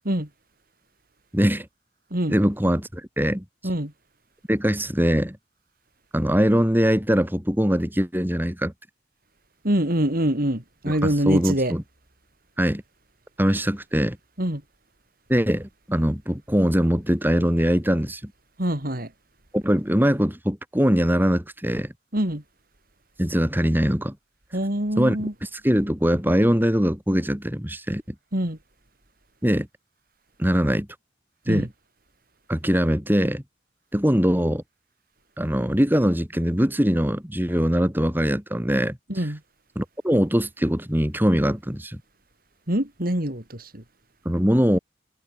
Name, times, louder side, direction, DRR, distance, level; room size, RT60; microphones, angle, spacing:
voice 1, 1.3-1.7 2.3-3.4 4.5-5.4 6.1-8.7 10.9-11.8 12.6-12.8 13.4-14.2 15.3-18.3 19.5-21.9 23.2-24.2 25.0-28.0 29.4-29.7 30.4-30.9 31.5-31.7 32.5-33.4 33.9-34.6 35.4-39.3 39.8-42.0 44.3-44.8, equal, 10° right, 3.7 m, -22 dB
voice 2, 9.6-11.7 14.4-14.6 18.6-19.1 22.1-22.4 24.5-25.3 28.3-28.6 31.5-31.7 39.1-39.4 42.7-43.8, right 1 dB, 50° right, 4.0 m, -25 dB
head